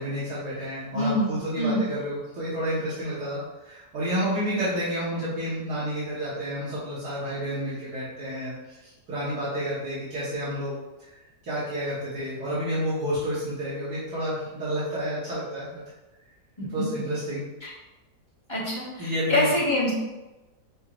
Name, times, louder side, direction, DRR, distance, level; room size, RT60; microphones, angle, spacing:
voice 1, 0.0-3.4 3.6-8.5 8.8-10.7 11.4-15.8 16.7-17.4 19.0-19.5, equal, 85° right, -11 dB, 2.0 m, -30 dB
voice 2, 0.9-1.9 5.1-5.3 16.6-16.7 17.6-17.7 18.5-19.9, left 1 dB, 15° left, -8 dB, 1.3 m, -26 dB
6.5 x 3.0 x 2.5 m, 1.1 s
omnidirectional pair, 1.8 m